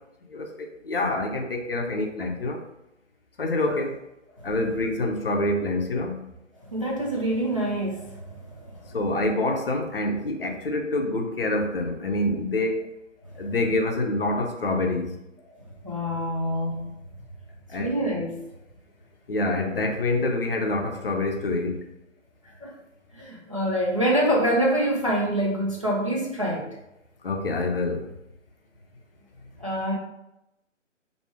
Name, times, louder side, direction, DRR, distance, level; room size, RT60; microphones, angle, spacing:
voice 1, 0.8-2.6 3.4-4.0 4.4-6.2 8.9-12.8 13.4-15.1 17.7-17.9 19.3-21.8 27.2-28.1, left 2 dB, 45° left, 3 dB, 0.6 m, -26 dB
voice 2, 6.6-9.0 13.2-13.5 15.8-16.9 17.8-18.4 22.4-22.7 23.1-26.7 29.6-29.9, right 1 dB, 25° right, -4 dB, 0.4 m, -26 dB
3.2 x 2.7 x 4.4 m, 0.89 s
figure-of-eight pair, 140°, 38 cm